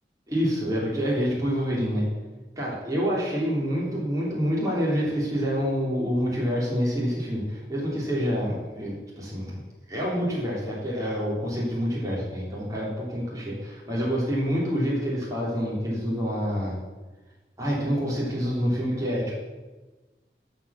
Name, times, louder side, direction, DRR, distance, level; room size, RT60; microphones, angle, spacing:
voice 1, 0.3-2.0 2.6-9.6 9.9-16.8 17.6-19.3, equal, 20° right, -6 dB, 3.4 m, -27 dB
12.5 x 4.9 x 7.0 m, 1.2 s
head